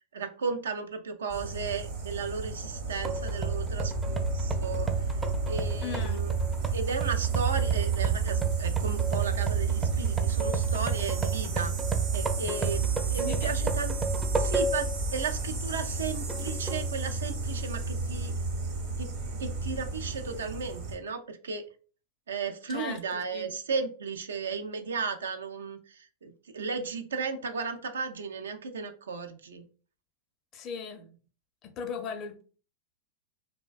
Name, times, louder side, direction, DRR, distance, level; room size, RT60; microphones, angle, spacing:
voice 1, 0.1-4.9 5.5-6.3 6.7-11.7 12.1-12.8 13.1-13.9 14.3-18.3 19.0-19.1 19.4-21.6 22.3-29.6, right 5 dB, 80° right, 0.3 m, -35 dB
sound 1, 1.3-21.0, right 4 dB, 60° right, 0.8 m, -31 dB
sound 2, 3.0-15.0 15.4-15.5 16.3-16.9, right 5 dB, 20° right, 0.4 m, -33 dB
voice 2, 5.8-6.2 13.2-13.6 22.7-23.5 30.5-31.0 31.6-32.4, left 6 dB, 40° left, 0.5 m, -38 dB
2.5 x 2.1 x 2.3 m
hypercardioid pair, 100°, 0 cm